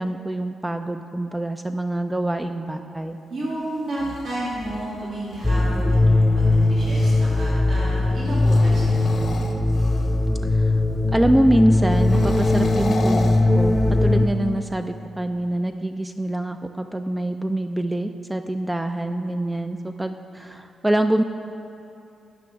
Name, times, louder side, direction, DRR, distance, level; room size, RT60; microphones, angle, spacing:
voice 1, 0.0-3.2 10.5-10.7 11.1-21.2, right 1 dB, 15° right, 7 dB, 0.3 m, -25 dB
voice 2, 3.3-9.2, right 1 dB, 70° right, -7 dB, 1.8 m, -31 dB
sound 1, 3.8-7.5 8.3-10.3 11.9-14.2, left 4 dB, 60° left, 0.7 m, -36 dB
sound 2, 5.4-14.3, left 2 dB, 10° left, 0.7 m, -19 dB
12.5 x 5.1 x 3.4 m, 2.7 s
hypercardioid pair, 45°, 0 cm